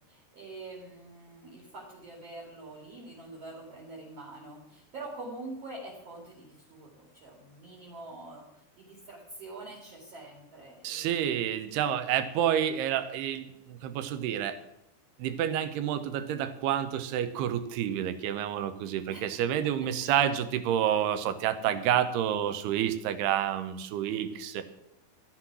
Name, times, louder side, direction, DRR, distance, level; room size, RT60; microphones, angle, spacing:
voice 1, 0.1-11.5 19.1-20.3, right 2 dB, 45° right, -2 dB, 3.2 m, -45 dB
voice 2, 10.8-14.6 15.2-24.6, right 10 dB, 80° right, 11 dB, 2.9 m, -29 dB
13.5 x 9.9 x 6.1 m, 0.83 s
omnidirectional pair, 4.6 m